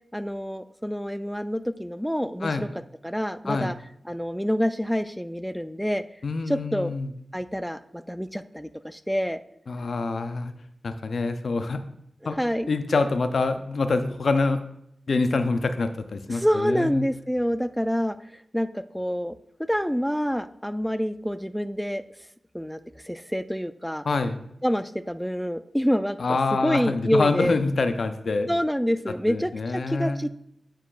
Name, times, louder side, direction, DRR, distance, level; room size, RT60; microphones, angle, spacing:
voice 1, 0.1-2.7 3.0-3.7 4.0-6.0 6.5-6.9 7.3-9.4 12.4-12.7 16.3-18.2 18.5-19.3 19.7-22.0 22.5-22.8 23.0-24.0 24.6-26.2 26.5-27.6 28.5-30.4, equal, ahead, 12 dB, 0.3 m, -27 dB
voice 2, 6.2-7.1 9.7-10.5 10.8-11.8 12.3-12.4 12.7-14.6 15.1-17.1 24.0-24.4 26.2-28.5 29.3-30.2, left 3 dB, 75° left, 9 dB, 0.4 m, -26 dB
9.1 x 4.4 x 2.4 m, 0.75 s
cardioid pair, 55°, 0 cm